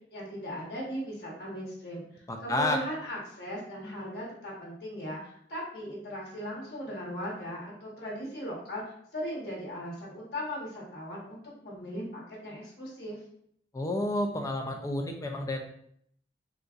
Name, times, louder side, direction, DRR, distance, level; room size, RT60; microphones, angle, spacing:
voice 1, 0.1-13.2, equal, 65° left, -5 dB, 1.1 m, -38 dB
voice 2, 2.3-2.8 13.7-15.6, left 1 dB, 20° left, 3 dB, 0.4 m, -30 dB
3.9 x 2.4 x 2.4 m, 0.67 s
head